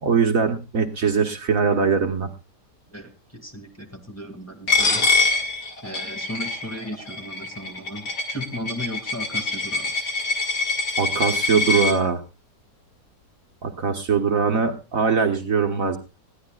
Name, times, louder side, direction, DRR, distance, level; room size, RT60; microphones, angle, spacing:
voice 1, 0.0-2.3 11.0-12.2 13.6-16.0, right 5 dB, 55° right, 4 dB, 1.6 m, -21 dB
voice 2, 2.9-5.1 5.8-9.9, equal, 10° left, 3 dB, 2.1 m, -36 dB
Coin (dropping), 4.7-11.9, left 3 dB, 75° left, 2.9 m, -24 dB
20.5 x 14.5 x 2.4 m, 0.30 s
omnidirectional pair, 1.8 m